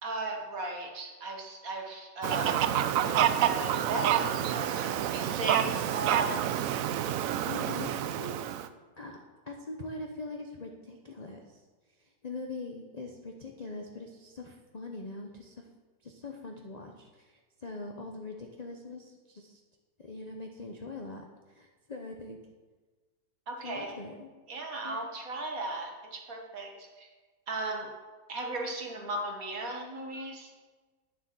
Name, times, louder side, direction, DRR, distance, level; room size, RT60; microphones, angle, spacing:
voice 1, 0.0-6.5 23.5-24.0 24.5-27.1 27.5-27.9 28.3-30.5, right 2 dB, 55° right, 2 dB, 1.8 m, -36 dB
Fowl, 2.2-8.7, right 10 dB, 70° right, 0.8 m, -28 dB
voice 2, 7.4-8.3 9.0-9.2 9.4-11.6 12.0-15.7 16.0-19.6 20.0-22.4 23.6-24.3 24.8-25.0, left 3 dB, 40° left, 2 dB, 0.5 m, -42 dB
9.6 x 7.3 x 6.1 m, 1.3 s
omnidirectional pair, 1.8 m